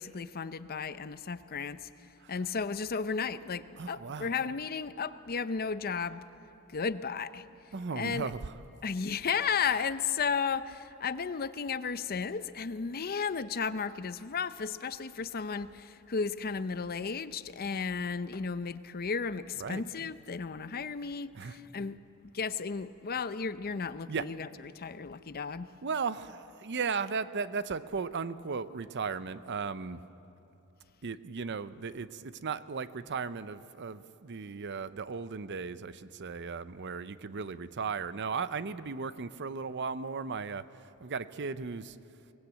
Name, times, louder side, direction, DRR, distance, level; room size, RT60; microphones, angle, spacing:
voice 1, 0.0-1.9 2.3-6.2 6.7-7.4 7.9-8.3 8.8-25.7, left 5 dB, 45° left, 13 dB, 0.6 m, -34 dB
voice 2, 3.8-4.4 7.7-8.6 19.5-19.8 21.3-21.6 24.1-24.3 25.8-30.0 31.0-42.0, right 5 dB, 55° right, 14 dB, 0.6 m, -36 dB
22.5 x 19.0 x 8.4 m, 2.9 s
head